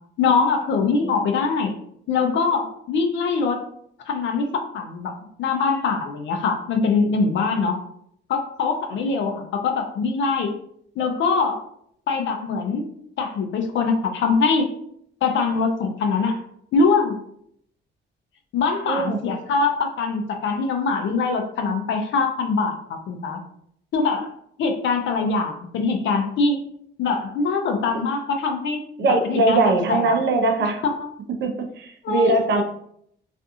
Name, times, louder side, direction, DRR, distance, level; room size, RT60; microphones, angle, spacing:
voice 1, 0.2-1.7 2.1-3.6 4.1-7.8 8.3-10.5 11.0-11.6 12.1-12.9 13.2-14.7 15.2-16.4 16.7-17.2 18.5-23.4 23.9-24.3 24.6-26.6 27.0-28.8 29.1-30.2 30.6-31.1 32.0-32.6, left 4 dB, 70° left, 3 dB, 0.5 m, -23 dB
voice 2, 18.9-19.2 29.0-30.8 31.4-32.6, right 2 dB, 65° right, 4 dB, 0.6 m, -21 dB
2.5 x 2.4 x 2.6 m, 0.68 s
cardioid pair, 90°, 20 cm